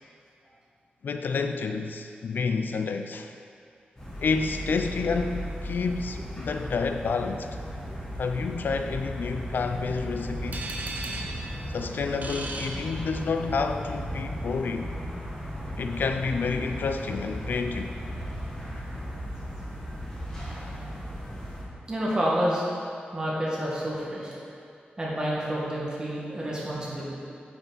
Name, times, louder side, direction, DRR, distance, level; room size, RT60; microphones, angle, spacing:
voice 1, 1.0-3.3 4.2-7.5 8.2-10.7 11.7-14.9 15.8-17.9, left 4 dB, 65° left, 7 dB, 0.4 m, -29 dB
sound 1, 4.0-21.6, equal, 15° left, 1.7 m, -36 dB
sound 2, 10.5-13.6, right 3 dB, 50° right, 0.7 m, -38 dB
voice 2, 21.9-22.6 23.1-24.3 25.0-27.1, equal, 25° right, -6 dB, 1.7 m, -29 dB
8.9 x 6.0 x 4.0 m, 2.4 s
wide cardioid pair, 155°, 3 cm